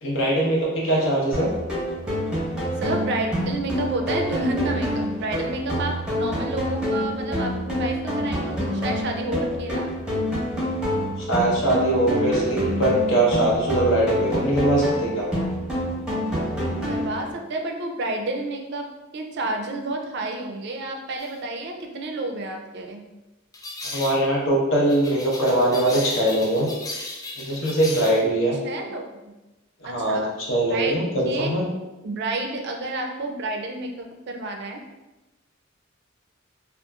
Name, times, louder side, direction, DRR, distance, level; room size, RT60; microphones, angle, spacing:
voice 1, 0.0-1.5 11.3-15.3 23.8-26.7 27.4-28.6 29.8-31.6, right 1 dB, 65° left, -3 dB, 0.8 m, -22 dB
sound 1, 1.3-17.3, equal, 5° right, 0.8 m, -27 dB
voice 2, 2.8-9.9 16.9-23.1 28.6-29.3 29.8-30.3 30.7-31.5 32.0-34.8, right 2 dB, 55° right, 3 dB, 0.4 m, -30 dB
sound 2, 21.2-21.3 23.5-24.2 24.9-28.2, left 2 dB, 20° left, 0.3 m, -36 dB
2.8 x 2.4 x 2.3 m, 1.0 s
head